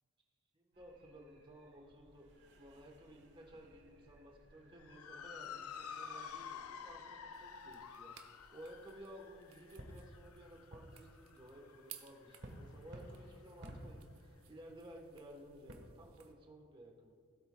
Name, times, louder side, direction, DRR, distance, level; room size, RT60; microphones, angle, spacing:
voice 1, 0.5-2.3 2.6-8.1 8.5-17.1, equal, 25° right, 1 dB, 1.1 m, -55 dB
sound 1, 0.7-15.7, right 1 dB, 55° right, 1.2 m, -58 dB
Motor vehicle (road) / Siren, 4.8-13.4, left 6 dB, 85° left, 0.5 m, -51 dB
sound 2, 7.3-16.3, right 11 dB, 75° right, 0.8 m, -61 dB
16.5 x 7.9 x 2.3 m, 2.3 s
head